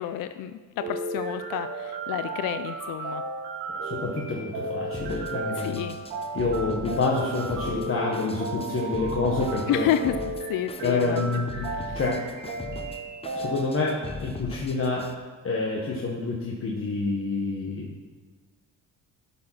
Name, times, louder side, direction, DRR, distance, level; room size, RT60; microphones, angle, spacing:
voice 1, 0.0-3.2 5.6-6.0 9.7-11.2 11.6-12.0, left 10 dB, 55° left, 10 dB, 0.5 m, -30 dB
sound 1, 0.8-14.1, right 3 dB, 85° right, 3.0 m, -34 dB
voice 2, 3.7-5.9 6.3-9.9 10.8-12.3 13.3-15.1 15.4-17.9, left 3 dB, 35° left, -2 dB, 1.4 m, -28 dB
Drum kit, 4.9-15.1, left 3 dB, 15° left, 0.7 m, -40 dB
12.0 x 4.9 x 5.8 m, 1.4 s
cardioid pair, 90°, 39 cm